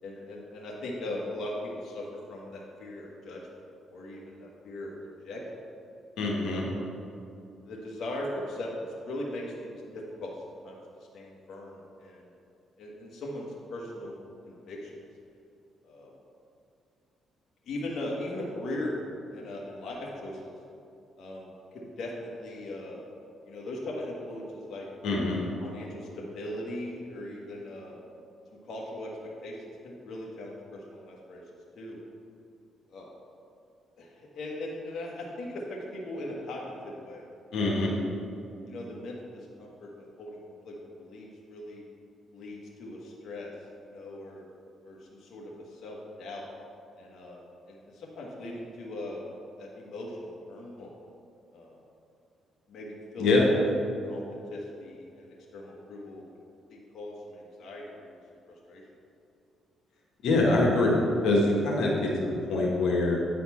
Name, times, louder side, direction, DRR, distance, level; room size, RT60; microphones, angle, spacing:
voice 1, 0.0-3.4 3.9-5.4 6.4-6.9 7.6-10.8 11.1-12.3 12.8-14.2 14.5-15.0 15.8-16.1 17.6-18.9 19.3-20.5 21.2-23.1 23.5-24.9 25.6-28.0 28.6-29.1 29.4-29.6 29.8-31.4 31.8-32.0 32.9-33.1 34.0-37.2 37.8-38.0 38.6-40.4 40.6-41.8 42.3-43.5 43.8-44.5 44.8-46.5 47.0-49.2 49.6-51.0 51.5-51.8 52.7-53.7 54.0-56.2 56.7-58.1 58.7-58.8, left 1 dB, 65° left, -3 dB, 1.3 m, -39 dB
voice 2, 6.2-6.7 25.0-25.4 37.5-37.9 53.2-53.5 60.2-63.2, left 2 dB, 80° left, -3 dB, 1.4 m, -24 dB
9.5 x 4.2 x 5.6 m, 2.6 s
cardioid pair, 90°, 0 cm